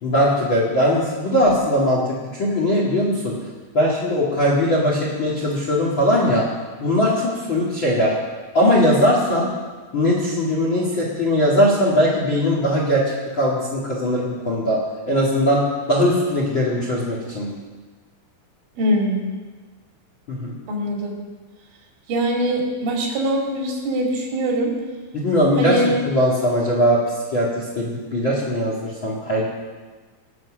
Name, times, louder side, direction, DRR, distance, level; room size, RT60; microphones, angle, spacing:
voice 1, 0.0-2.0 2.3-3.4 3.7-6.5 6.8-8.1 8.5-9.5 9.9-13.0 13.3-14.8 15.1-15.6 15.9-17.5 20.3-20.5 25.1-27.0 27.3-29.5, equal, 40° left, -3 dB, 1.8 m, -20 dB
voice 2, 18.8-19.2 20.7-21.1 22.1-24.7 25.6-26.0, right 1 dB, 75° right, 0 dB, 5.0 m, -22 dB
21.0 x 7.8 x 6.3 m, 1.4 s
omnidirectional pair, 5.6 m